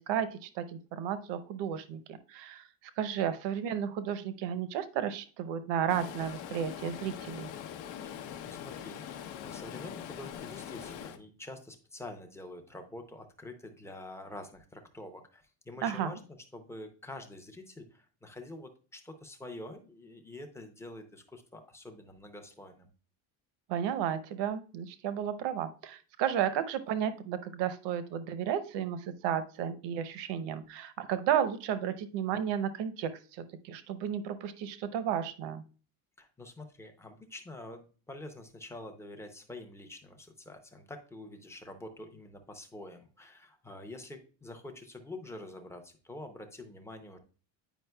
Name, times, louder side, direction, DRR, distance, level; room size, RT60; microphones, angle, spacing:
voice 1, 0.0-2.6 3.0-7.5 15.8-16.1 23.7-35.6, right 9 dB, 70° right, 12 dB, 0.8 m, -33 dB
Stream, 5.9-11.2, left 9 dB, 75° left, 0.8 m, -42 dB
voice 2, 8.0-16.2 16.5-22.9 36.2-47.2, left 2 dB, 5° left, 5 dB, 0.5 m, -47 dB
9.1 x 5.1 x 2.2 m, 0.37 s
cardioid pair, 160°, 45 cm